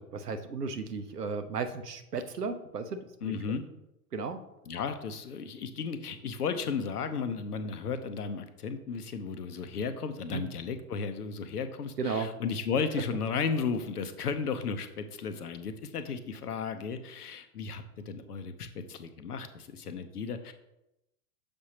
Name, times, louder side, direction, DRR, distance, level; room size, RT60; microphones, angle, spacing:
voice 1, 0.0-3.3 4.1-4.4 10.3-10.4 12.0-12.3, right 4 dB, 85° right, 9 dB, 0.7 m, -34 dB
voice 2, 3.2-3.6 4.7-20.5, left 5 dB, 75° left, 9 dB, 0.8 m, -34 dB
6.9 x 5.2 x 2.8 m, 0.90 s
figure-of-eight pair, 95°, 46 cm